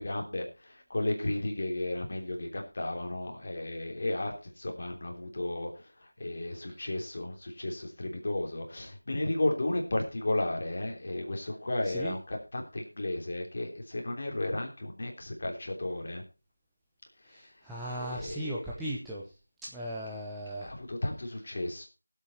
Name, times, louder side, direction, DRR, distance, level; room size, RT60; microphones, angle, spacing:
voice 1, 0.0-16.2 17.2-17.5 17.9-18.8 20.6-21.9, left 1 dB, 30° left, 2 dB, 3.2 m, -34 dB
voice 2, 17.3-19.2 19.7-20.7, right 1 dB, ahead, -7 dB, 0.9 m, -37 dB
17.0 x 8.3 x 4.4 m, 0.31 s
figure-of-eight pair, 175°, 0 cm